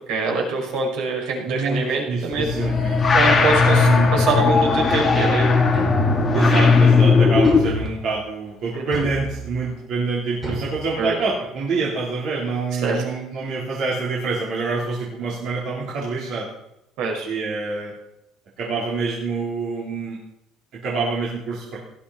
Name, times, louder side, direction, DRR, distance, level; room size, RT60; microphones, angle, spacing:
voice 1, 0.1-2.5 3.1-5.6 8.7-9.1 11.0-11.2 12.7-13.0 17.0-17.3, right 3 dB, 70° right, 0 dB, 5.5 m, -24 dB
voice 2, 1.5-3.1 3.7-4.1 6.3-16.5 17.3-17.9 18.6-20.2 20.8-21.8, right 4 dB, 50° right, -6 dB, 3.9 m, -26 dB
sound 1, 2.3-7.9, left 4 dB, 20° left, 2.1 m, -17 dB
sound 2, 5.7-6.4 7.4-8.3 8.9-9.7 10.4-11.4, right 2 dB, 15° right, 5.4 m, -34 dB
18.0 x 14.0 x 4.4 m, 0.82 s
cardioid pair, 170°, 0 cm